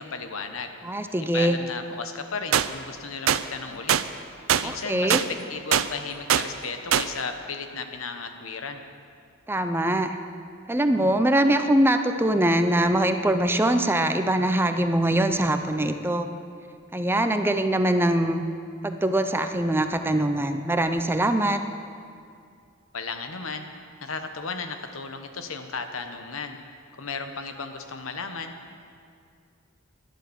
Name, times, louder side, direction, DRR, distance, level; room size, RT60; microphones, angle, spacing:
voice 1, 0.0-0.7 1.3-4.0 4.6-8.8 22.9-23.7 24.0-26.6 27.0-28.8, left 4 dB, 80° left, 7 dB, 1.1 m, -35 dB
voice 2, 0.8-1.6 4.6-5.2 9.5-10.2 10.7-16.3 16.9-18.4 18.8-21.6, right 1 dB, 10° right, 7 dB, 0.6 m, -23 dB
sound 1, 2.5-2.7 3.3-3.4 3.9-4.0 4.5-4.7 5.1-5.3 5.7-5.9 6.3-6.5 6.9-7.1, right 9 dB, 80° right, 0.5 m, -21 dB
12.0 x 11.0 x 7.1 m, 2.3 s
head